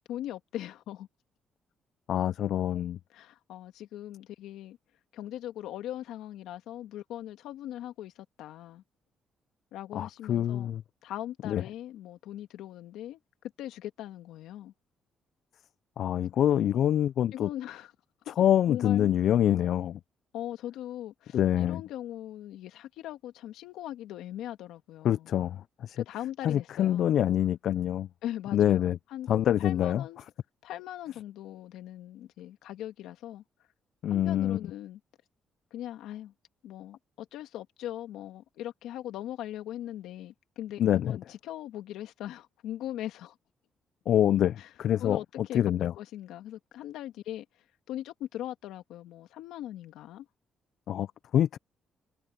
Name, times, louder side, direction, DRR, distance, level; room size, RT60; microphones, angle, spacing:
voice 1, 0.1-1.1 3.1-4.8 5.1-8.8 9.7-10.7 11.0-13.2 13.6-14.7 17.3-17.9 18.7-19.1 20.3-25.3 26.0-27.1 28.2-29.3 29.6-30.2 30.6-33.4 34.1-35.0 35.7-36.3 36.6-43.4 44.6-44.7 45.0-45.6 46.0-47.5 47.9-50.3, left 12 dB, 90° left, 2.1 m, -40 dB
voice 2, 2.1-3.0 9.9-10.8 11.4-11.6 16.0-17.5 18.3-20.0 21.3-21.8 25.0-26.0 26.4-28.1 28.5-29.0 29.3-30.0 34.0-34.7 40.8-41.2 44.1-45.9 50.9-51.1 51.3-51.6, left 11 dB, 70° left, 0.4 m, -26 dB
cardioid pair, 90°, 0 cm